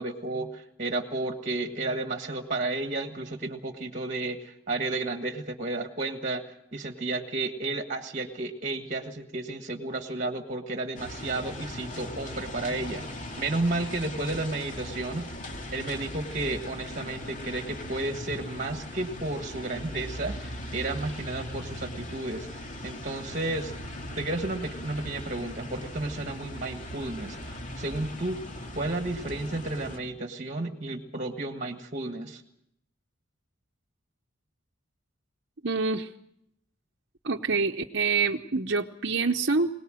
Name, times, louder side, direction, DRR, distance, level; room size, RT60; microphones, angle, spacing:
voice 1, 0.0-15.4 15.7-23.7 24.2-28.5 28.7-32.4, right 2 dB, 40° right, 6 dB, 1.6 m, -32 dB
sound 1, 11.0-30.0, left 1 dB, 40° left, 2.5 m, -39 dB
voice 2, 35.6-36.1 37.2-39.7, right 4 dB, 55° right, 2 dB, 0.9 m, -26 dB
22.0 x 19.0 x 7.7 m, 0.75 s
head